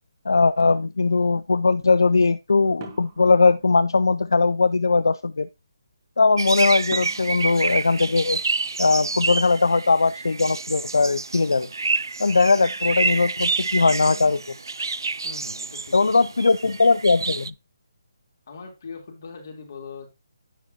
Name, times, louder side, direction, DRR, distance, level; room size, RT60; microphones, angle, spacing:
voice 1, 0.3-5.5 6.2-8.4 8.8-11.7 12.2-14.4 15.9-17.5, left 4 dB, 80° left, 0.4 m, -20 dB
sound 1, 2.8-4.3 6.9-8.7, right 7 dB, 30° right, 1.9 m, -46 dB
sound 2, 6.4-17.5, right 3 dB, 80° right, 0.4 m, -28 dB
voice 2, 15.2-16.2 18.5-20.1, left 5 dB, 55° left, 3.5 m, -40 dB
10.0 x 7.1 x 2.9 m
figure-of-eight pair, 155°, 2 cm